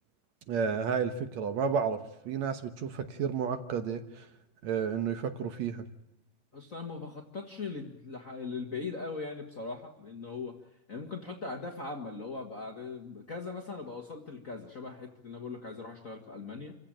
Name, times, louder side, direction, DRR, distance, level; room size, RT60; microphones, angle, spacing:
voice 1, 0.5-4.3 4.6-5.9, right 6 dB, 65° right, 8 dB, 2.3 m, -31 dB
voice 2, 6.5-10.6 10.9-16.7, left 4 dB, 30° left, 2 dB, 1.7 m, -40 dB
27.0 x 16.0 x 8.9 m, 0.83 s
omnidirectional pair, 3.7 m